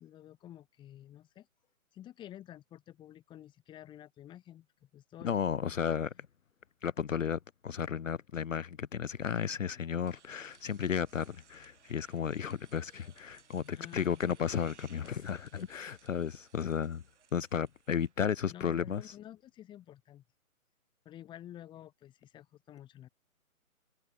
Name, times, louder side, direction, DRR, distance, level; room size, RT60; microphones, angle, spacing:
voice 1, 0.0-1.5 1.9-5.8 13.7-14.4 18.5-20.2 21.1-23.1, left 12 dB, 10° left, 2.1 m, -51 dB
voice 2, 5.2-6.1 6.8-17.0 17.3-19.1, left 7 dB, 60° left, 0.9 m, -33 dB
sound 1, 10.0-18.3, right 7 dB, 55° right, 3.2 m, -63 dB
figure-of-eight pair, 140°, 43 cm